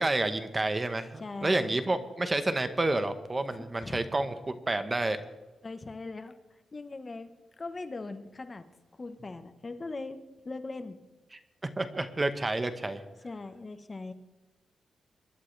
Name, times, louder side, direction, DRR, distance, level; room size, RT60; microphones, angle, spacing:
voice 1, 0.0-5.2 11.3-11.4 11.8-13.0, right 2 dB, 20° right, 10 dB, 1.0 m, -29 dB
voice 2, 1.2-1.7 3.5-4.0 5.6-6.3 6.7-7.3 7.6-8.6 9.0-10.2 10.4-11.0 13.2-14.1, left 3 dB, 30° left, 9 dB, 1.0 m, -40 dB
22.5 x 11.0 x 3.3 m, 1.1 s
cardioid pair, 110°, 0 cm